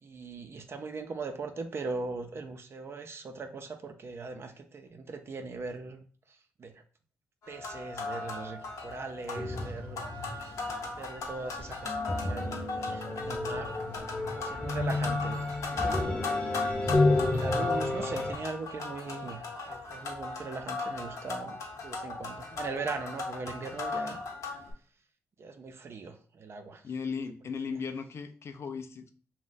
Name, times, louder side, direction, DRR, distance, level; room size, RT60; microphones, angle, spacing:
voice 1, 0.0-6.0 6.6-6.7 7.5-10.1 10.9-13.7 14.3-17.0 17.3-24.2 25.4-26.8, right 4 dB, 50° right, 6 dB, 0.4 m, -40 dB
sound 1, 7.4-24.7, left 3 dB, 65° left, 0.8 m, -37 dB
sound 2, 9.3-18.3, left 2 dB, 20° left, 0.7 m, -31 dB
voice 2, 26.8-29.1, left 5 dB, 50° left, 8 dB, 0.4 m, -36 dB
2.6 x 2.1 x 3.7 m, 0.43 s
cardioid pair, 65°, 6 cm